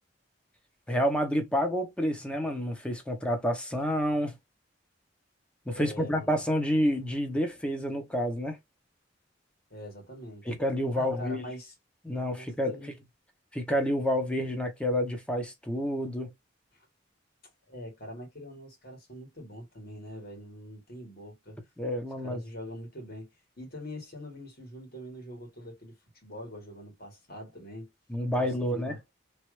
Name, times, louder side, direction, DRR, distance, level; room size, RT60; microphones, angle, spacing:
voice 1, 0.9-4.4 5.7-8.6 10.5-11.5 12.0-12.8 13.5-16.3 21.8-22.4 28.1-29.0, equal, 5° left, 0.8 m, -29 dB
voice 2, 5.7-6.3 9.7-10.5 10.9-11.7 12.3-12.9 17.7-21.6 22.2-23.3 23.6-25.9 26.2-27.9 28.4-29.0, left 1 dB, 55° left, 1.7 m, -43 dB
3.1 x 2.4 x 3.1 m
head